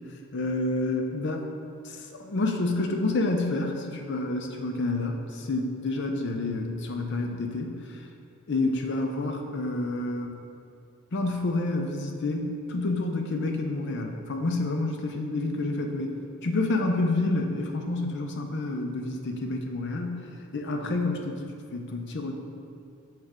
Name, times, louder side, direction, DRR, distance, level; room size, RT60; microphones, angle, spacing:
voice 1, 0.3-1.5 1.8-8.1 8.5-10.4 11.1-21.5 21.7-22.4, left 2 dB, 50° left, 3 dB, 0.5 m, -29 dB
6.0 x 3.2 x 5.0 m, 2.5 s
head